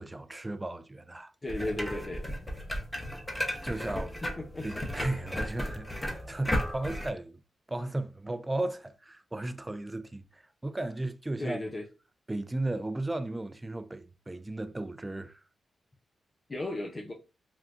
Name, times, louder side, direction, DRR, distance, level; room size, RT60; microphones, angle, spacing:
voice 1, 0.0-1.3 3.6-4.2 4.6-7.4 7.7-11.6 12.3-15.4, right 2 dB, 20° right, 0.4 m, -35 dB
voice 2, 1.4-2.3 4.4-4.7 11.4-11.9 16.5-17.1, left 1 dB, 40° left, 0.5 m, -35 dB
sound 1, 1.5-7.1, equal, 20° left, 0.9 m, -34 dB
3.7 x 2.3 x 2.5 m
supercardioid pair, 50°, 0 cm